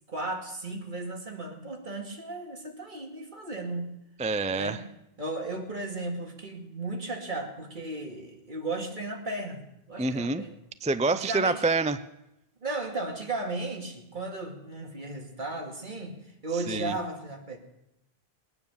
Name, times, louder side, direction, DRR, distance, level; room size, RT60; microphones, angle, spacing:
voice 1, 0.1-4.0 4.5-4.8 5.2-10.6 11.1-11.6 12.6-16.2 16.4-17.6, right 2 dB, 50° right, 2 dB, 2.4 m, -35 dB
voice 2, 4.2-4.8 10.0-10.4 10.8-12.0 16.7-17.0, right 3 dB, 10° right, 12 dB, 0.3 m, -27 dB
21.0 x 9.7 x 7.1 m, 0.85 s
omnidirectional pair, 1.0 m